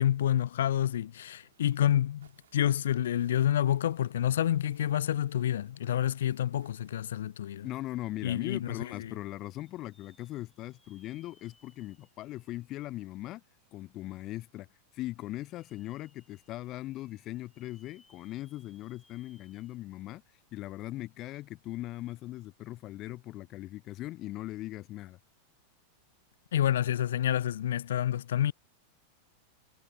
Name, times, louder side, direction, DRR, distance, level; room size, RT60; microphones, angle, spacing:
voice 1, 0.0-7.7 8.2-9.1 26.5-28.5, left 11 dB, 60° left, 0.3 m, -28 dB
sound 1, 1.2-7.9 8.2-12.2 13.2-13.3 13.7-13.8, right 9 dB, 65° right, 7.6 m, -69 dB
voice 2, 7.6-13.4 13.7-14.7 14.9-20.2 20.5-25.2, left 16 dB, 35° left, 0.8 m, -40 dB
sound 2, 9.5-13.5 14.0-14.1 15.1-20.1 20.5-20.6 22.5-22.7, left 3 dB, 10° left, 7.6 m, -68 dB
figure-of-eight pair, 90°, 0 cm